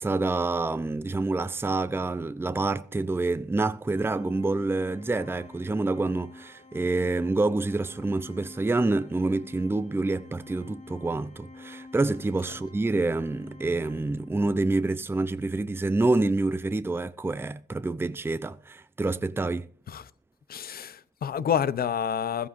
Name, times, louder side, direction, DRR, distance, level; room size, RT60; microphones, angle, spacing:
voice 1, 0.0-19.7, right 2 dB, 15° right, 0.6 m, -27 dB
Organ, 3.9-14.6, left 3 dB, 40° left, 2.3 m, -48 dB
voice 2, 20.5-22.5, left 8 dB, 60° left, 0.7 m, -28 dB
21.0 x 14.5 x 2.6 m
cardioid pair, 115°, 17 cm